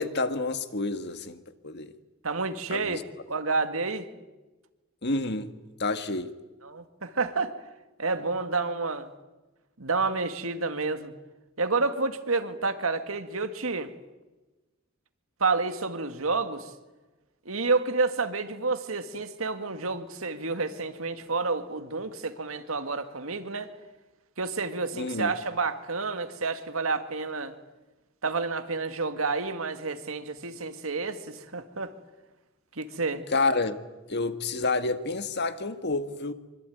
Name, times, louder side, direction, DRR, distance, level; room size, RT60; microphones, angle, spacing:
voice 1, 0.0-1.4 1.6-1.9 2.7-3.0 5.0-5.5 5.8-6.3 24.9-25.3 33.3-33.8 34.1-36.3, left 3 dB, 55° left, 1.7 m, -29 dB
voice 2, 2.2-4.1 6.6-7.5 8.0-9.1 9.8-11.1 11.6-13.9 15.4-16.7 17.5-23.7 24.4-27.5 28.2-31.9 32.8-33.2, right 3 dB, 85° right, 2.0 m, -29 dB
25.0 x 24.5 x 9.4 m
head